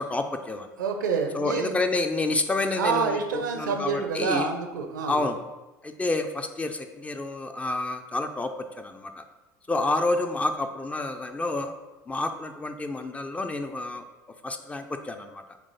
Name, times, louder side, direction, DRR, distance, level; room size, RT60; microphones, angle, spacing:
voice 1, 0.0-0.7 1.3-4.5 5.1-5.4 5.8-8.5 8.8-9.2 9.7-11.7 12.1-14.0 14.4-15.4, left 2 dB, 15° left, 6 dB, 0.5 m, -29 dB
voice 2, 0.8-1.7 2.8-5.2, right 5 dB, 70° right, 5 dB, 0.7 m, -27 dB
8.1 x 3.0 x 4.0 m, 1.1 s
figure-of-eight pair, 70°, 10 cm